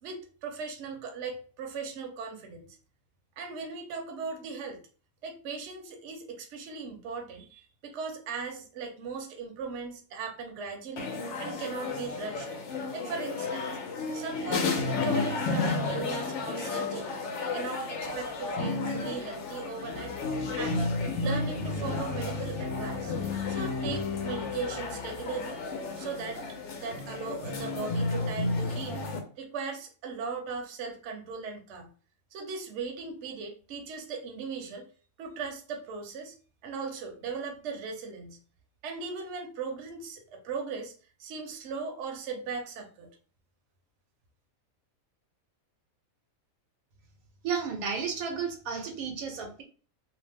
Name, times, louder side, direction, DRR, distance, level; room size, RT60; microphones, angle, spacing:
voice 1, 0.0-2.7 3.4-4.8 5.2-12.5 12.9-13.7 14.1-17.2 17.5-20.1 20.6-20.9 21.2-23.1 23.5-25.6 26.0-26.4 26.7-29.1 29.4-31.9 32.3-34.9 35.2-36.4 36.6-38.4 38.8-40.9 41.2-43.1, right 5 dB, 65° right, 4 dB, 0.9 m, -38 dB
sound 1, 11.0-29.2, left 3 dB, 65° left, 0.8 m, -32 dB
Organ, 18.5-28.5, left 9 dB, 45° left, 0.6 m, -50 dB
voice 2, 47.4-49.6, right 6 dB, 90° right, 4 dB, 1.1 m, -32 dB
2.6 x 2.1 x 3.3 m, 0.40 s
omnidirectional pair, 1.5 m